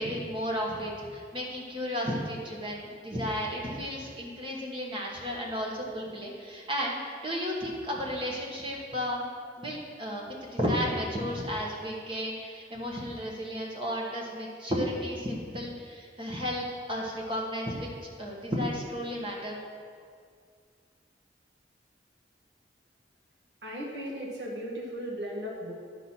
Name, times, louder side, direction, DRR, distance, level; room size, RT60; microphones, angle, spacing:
voice 1, 0.0-9.3 9.6-17.9 18.2-19.6, equal, 30° right, -2 dB, 1.3 m, -33 dB
voice 2, 23.6-25.7, equal, 70° right, -3 dB, 1.7 m, -36 dB
10.5 x 4.2 x 6.0 m, 2.1 s
head